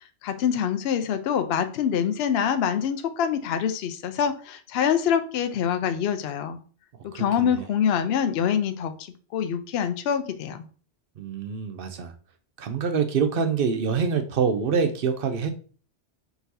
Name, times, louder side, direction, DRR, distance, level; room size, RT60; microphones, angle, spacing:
voice 1, 0.2-6.6 7.0-8.9 9.3-10.7, left 8 dB, 65° left, 9 dB, 0.8 m, -25 dB
voice 2, 7.1-7.6 11.2-12.1 12.6-15.5, right 6 dB, 60° right, 7 dB, 0.7 m, -25 dB
4.6 x 3.9 x 2.7 m, 0.39 s
omnidirectional pair, 1.2 m